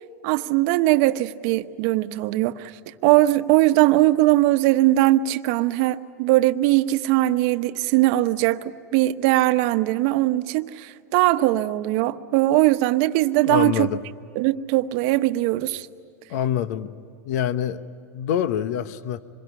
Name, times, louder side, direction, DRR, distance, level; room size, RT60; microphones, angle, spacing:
voice 1, 0.2-8.6 8.9-13.9 14.3-15.9, right 16 dB, 55° right, 11 dB, 1.1 m, -20 dB
voice 2, 13.4-14.0 16.3-16.9 17.2-17.8 18.1-19.2, left 10 dB, 65° left, 13 dB, 1.1 m, -25 dB
26.5 x 22.5 x 9.7 m, 2.4 s
hypercardioid pair, 120°, 9 cm